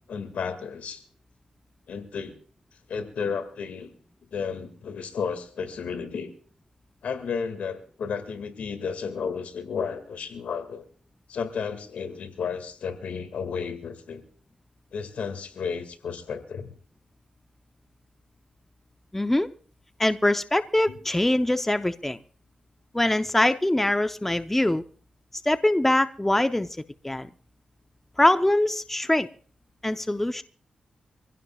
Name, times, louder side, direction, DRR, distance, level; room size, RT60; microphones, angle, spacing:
voice 1, 0.1-1.0 1.9-2.3 2.9-4.0 4.3-6.3 7.0-10.8 11.3-14.2 14.9-16.7 20.9-21.0, left 6 dB, 85° left, 7 dB, 2.0 m, -33 dB
voice 2, 19.1-19.5 20.0-22.2 22.9-24.8 25.4-26.7 27.0-27.3 28.2-29.3 29.8-30.4, left 1 dB, 10° left, 10 dB, 0.7 m, -23 dB
25.0 x 16.0 x 2.4 m, 0.43 s
cardioid pair, 75°, 2 cm